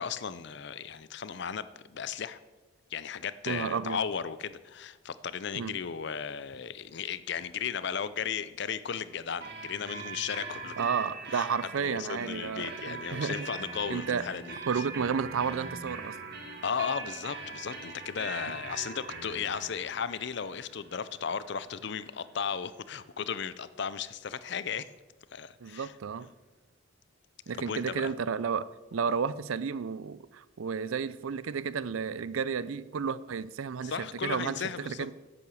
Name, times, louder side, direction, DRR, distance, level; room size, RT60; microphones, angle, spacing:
voice 1, 0.0-2.4 2.9-10.7 11.3-11.5 11.8-14.6 16.6-24.9 25.3-25.9 27.5-28.1 33.8-35.1, left 7 dB, 55° left, 15 dB, 0.5 m, -35 dB
voice 2, 3.5-4.0 5.5-5.8 10.8-13.5 13.9-14.3 14.7-16.2 18.5-18.6 25.6-26.3 27.5-35.1, right 6 dB, 75° right, 18 dB, 0.5 m, -32 dB
sound 1, 9.4-23.0, right 4 dB, 50° right, 1.8 m, -42 dB
10.5 x 8.7 x 6.3 m, 1.2 s
head